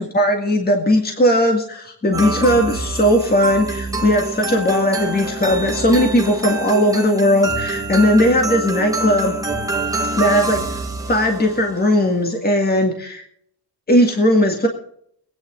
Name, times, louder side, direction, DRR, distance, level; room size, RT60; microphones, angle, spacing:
voice 1, 0.0-9.4 10.1-10.8 11.1-13.2 13.9-14.7, equal, 20° left, 3 dB, 1.9 m, -17 dB
sound 1, 2.1-11.8, right 2 dB, 10° right, 1.7 m, -26 dB
23.0 x 9.6 x 3.8 m, 0.68 s
wide cardioid pair, 170°, 42 cm